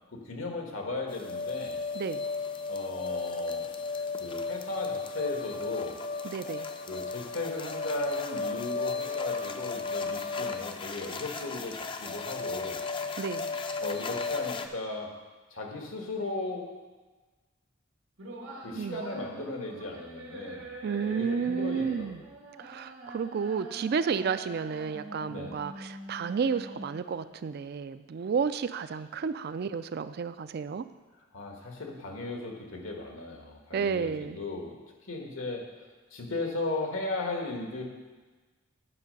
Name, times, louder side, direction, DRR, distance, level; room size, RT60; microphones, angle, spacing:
voice 1, 0.1-1.8 2.7-3.7 4.2-6.0 6.9-12.8 13.8-15.2 15.5-16.7 18.6-20.7 21.0-22.3 25.3-25.6 31.3-34.7 35.0-35.7 36.1-37.8, left 2 dB, 80° left, 1 dB, 1.6 m, -36 dB
sound 1, 1.1-14.7, left 4 dB, 25° left, 0.4 m, -34 dB
voice 2, 6.2-6.7 13.2-13.5 18.7-19.0 20.8-22.2 22.6-30.8 33.7-34.4, right 6 dB, 50° right, 12 dB, 0.3 m, -31 dB
sound 2, 18.2-27.2, right 1 dB, 90° right, 2.2 m, -44 dB
9.9 x 5.6 x 5.3 m, 1.3 s
head